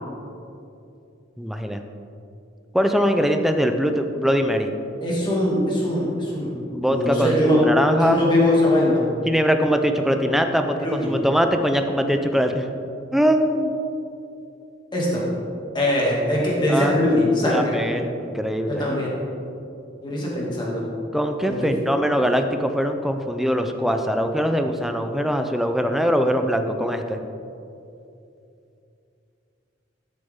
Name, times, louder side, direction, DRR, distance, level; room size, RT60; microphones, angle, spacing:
voice 1, 1.4-1.8 2.7-4.7 6.7-8.2 9.3-12.7 13.1-13.7 16.7-17.0 17.4-18.8 21.1-27.2, equal, ahead, 6 dB, 0.5 m, -22 dB
voice 2, 5.0-6.6 6.9-7.6 8.0-9.0 10.7-11.1 14.9-15.3 15.7-17.8 18.7-19.2 20.0-20.8 21.5-21.6, left 1 dB, 25° left, -5 dB, 2.3 m, -21 dB
12.0 x 6.6 x 3.6 m, 2.7 s
head